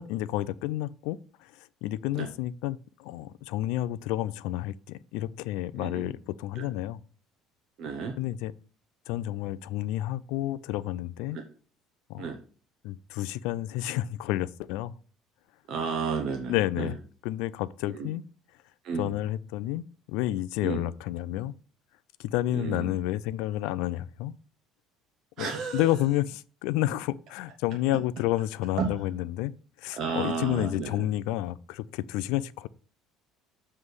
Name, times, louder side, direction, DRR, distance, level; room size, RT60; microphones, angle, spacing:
voice 1, 0.0-7.0 8.2-8.5 9.1-11.4 12.1-12.3 12.8-14.9 16.5-17.0 17.2-18.2 19.0-19.8 20.1-21.5 22.2-24.3 25.4-29.5 29.8-32.7, left 14 dB, 75° left, 0.4 m, -30 dB
voice 2, 5.8-6.1 6.6-6.7 7.8-8.1 11.3-11.4 12.2-12.4 15.7-16.9 17.9-18.1 18.8-19.1 20.6-20.8 22.5-22.9 25.4-25.9 28.8-29.0 29.9-31.1, right 5 dB, 45° right, 0.8 m, -32 dB
7.4 x 3.3 x 6.2 m
cardioid pair, 180°, 0 cm